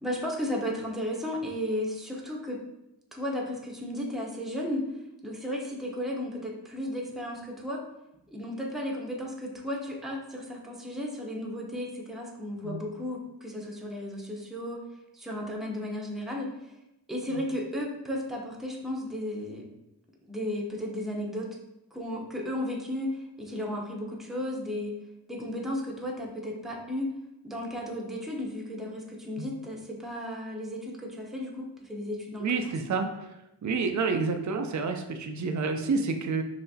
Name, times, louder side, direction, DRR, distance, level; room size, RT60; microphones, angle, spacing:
voice 1, 0.0-2.6 3.1-4.9 5.2-7.8 8.3-14.8 15.1-16.5 17.1-19.6 20.3-21.5 21.9-24.9 25.3-27.1 27.4-32.7, left 1 dB, ahead, -1 dB, 0.8 m, -34 dB
voice 2, 32.4-33.1 33.6-36.4, right 4 dB, 45° right, 6 dB, 0.5 m, -29 dB
5.7 x 2.0 x 2.7 m, 0.88 s
cardioid pair, 45°, 42 cm